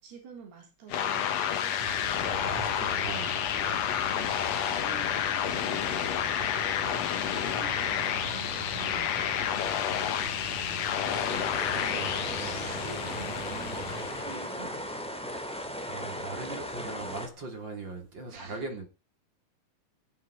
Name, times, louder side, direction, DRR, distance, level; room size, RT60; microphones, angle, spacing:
voice 1, 0.0-1.8 4.1-9.5 11.7-14.9 18.3-18.8, right 5 dB, 80° right, 5.2 m, -48 dB
sound 1, 0.9-14.6, left 9 dB, 60° left, 1.9 m, -30 dB
sound 2, 1.8-14.1, right 3 dB, 55° right, 7.5 m, -42 dB
voice 2, 2.1-4.0 9.8-10.4 11.1-11.4 11.7-12.6 15.5-18.9, right 3 dB, 30° right, 3.5 m, -41 dB
sound 3, 11.1-17.3, equal, ahead, 1.6 m, -37 dB
16.0 x 8.6 x 5.0 m
omnidirectional pair, 4.5 m